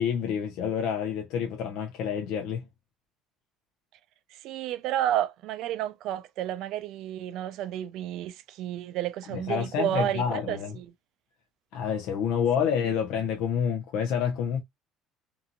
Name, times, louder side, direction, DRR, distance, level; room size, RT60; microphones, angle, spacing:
voice 1, 0.0-2.6 9.3-10.8 11.7-14.6, left 7 dB, 70° left, 0.6 m, -28 dB
voice 2, 4.3-10.9, right 12 dB, 65° right, 0.4 m, -31 dB
2.8 x 2.6 x 2.4 m
cardioid pair, 150°, 0 cm